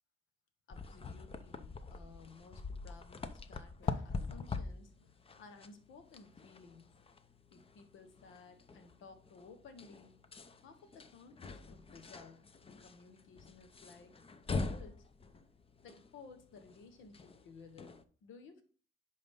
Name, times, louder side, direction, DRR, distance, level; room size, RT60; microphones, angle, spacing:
voice 1, 0.7-6.9 7.5-10.2 10.6-12.4 12.8-14.1 14.4-15.1 15.8-18.6, left 4 dB, 85° left, 8 dB, 1.3 m, -57 dB
sound 1, 0.7-18.0, left 4 dB, 30° left, 0.7 m, -44 dB
10.5 x 3.9 x 3.7 m, 0.41 s
cardioid pair, 90°, 20 cm